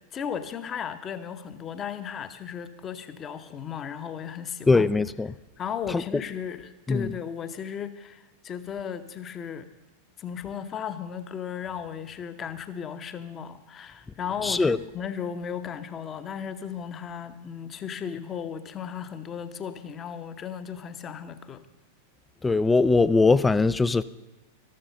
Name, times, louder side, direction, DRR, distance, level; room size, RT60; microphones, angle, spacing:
voice 1, 0.1-4.9 5.6-9.7 10.2-21.6, left 8 dB, 25° left, 1.0 m, -35 dB
voice 2, 4.7-5.3 5.9-6.2 6.9-7.1 14.4-14.8 22.4-24.0, left 3 dB, 10° left, 0.5 m, -21 dB
13.5 x 13.0 x 5.6 m
figure-of-eight pair, 90°, 0 cm